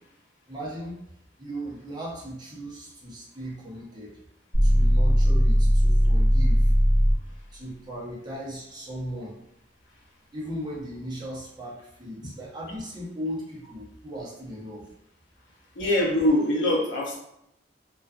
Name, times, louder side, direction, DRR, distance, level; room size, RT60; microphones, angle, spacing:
voice 1, 0.5-1.0 1.4-4.1 4.6-6.7 7.5-9.4 10.3-14.8, equal, 20° right, -6 dB, 0.7 m, -37 dB
sound 1, 4.5-7.3, equal, 45° left, 0.8 m, -19 dB
voice 2, 15.8-17.2, left 1 dB, 80° left, -2 dB, 0.7 m, -23 dB
2.4 x 2.4 x 2.4 m, 0.79 s
head